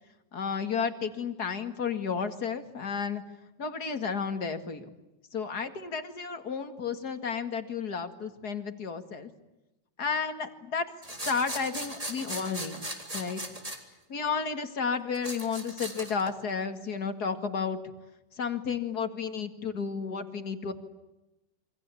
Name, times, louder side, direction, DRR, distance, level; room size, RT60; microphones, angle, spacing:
voice 1, 0.3-3.2 3.6-4.9 5.3-9.3 10.0-10.9 11.2-12.8 13.1-13.4 14.1-17.8 18.4-20.7, left 5 dB, 60° left, 8 dB, 2.6 m, -32 dB
sound 1, 11.0-13.8 15.1-16.4, right 1 dB, 20° right, 3.8 m, -38 dB
28.5 x 25.0 x 8.5 m, 0.99 s
omnidirectional pair, 1.9 m